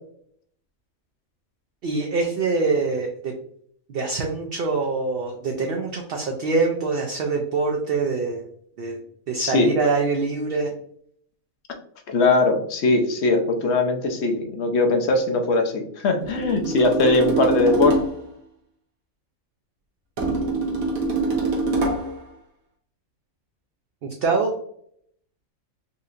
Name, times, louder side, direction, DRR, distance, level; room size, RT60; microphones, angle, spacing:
voice 1, 1.8-3.3 3.9-8.4 8.8-9.0 9.3-10.7 24.2-24.5, right 4 dB, 60° right, 1 dB, 0.6 m, -24 dB
voice 2, 9.4-9.7 12.1-18.0, left 3 dB, 60° left, 4 dB, 0.8 m, -20 dB
sound 1, 16.2-18.3 20.2-22.2, right 3 dB, 80° right, 1.4 m, -24 dB
4.1 x 2.7 x 2.4 m, 0.65 s
omnidirectional pair, 1.4 m